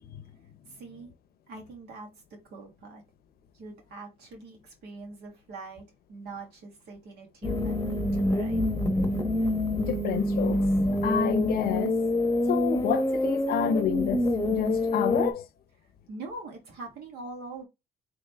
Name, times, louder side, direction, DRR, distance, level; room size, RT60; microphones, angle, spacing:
voice 1, 0.7-1.1 1.5-2.1 2.5-3.0 3.5-5.8 6.1-8.6 16.1-17.6, right 3 dB, 75° right, 1.9 m, -43 dB
sound 1, 7.4-15.3, left 1 dB, 15° left, 0.9 m, -26 dB
voice 2, 9.8-10.6 10.9-12.0 12.5-15.5, left 7 dB, 65° left, 0.7 m, -28 dB
3.8 x 3.1 x 3.3 m
cardioid pair, 110°, 17 cm